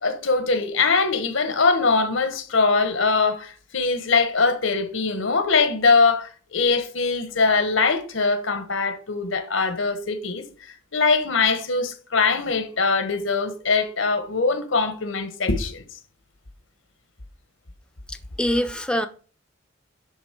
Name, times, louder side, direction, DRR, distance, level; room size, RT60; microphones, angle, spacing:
voice 1, 0.0-10.5 10.9-15.8, left 4 dB, 85° left, 1.3 m, -22 dB
voice 2, 18.1-19.1, equal, 5° left, 0.5 m, -25 dB
11.0 x 3.8 x 5.2 m
head